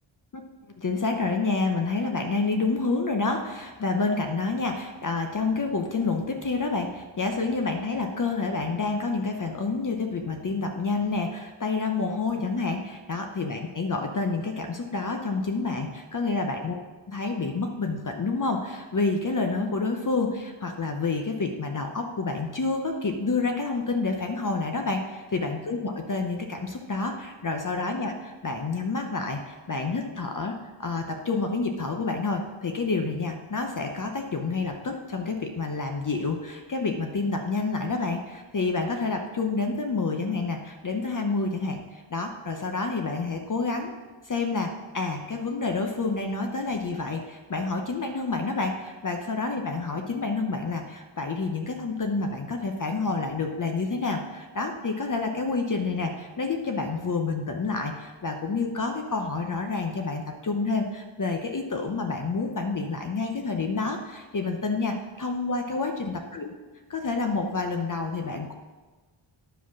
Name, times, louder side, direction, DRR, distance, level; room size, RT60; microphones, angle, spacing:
voice 1, 0.8-16.8 17.1-30.5 30.8-43.9 44.3-66.5 66.9-68.5, left 3 dB, 40° left, 4 dB, 0.8 m, -28 dB
10.0 x 5.0 x 6.0 m, 1.3 s
wide cardioid pair, 110°, 49 cm